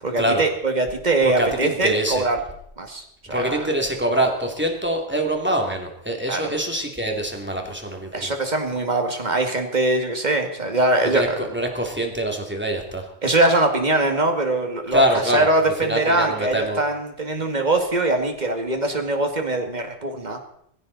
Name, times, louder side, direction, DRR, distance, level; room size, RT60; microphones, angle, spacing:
voice 1, 0.0-2.4 2.8-3.7 6.3-6.5 8.1-11.5 13.2-15.0 15.3-20.4, right 2 dB, 35° right, 4 dB, 2.3 m, -22 dB
voice 2, 1.2-2.2 3.3-8.3 11.1-13.1 14.9-15.5 15.8-16.8, right 1 dB, 10° right, 2 dB, 2.8 m, -24 dB
20.0 x 15.5 x 4.1 m, 0.70 s
omnidirectional pair, 1.2 m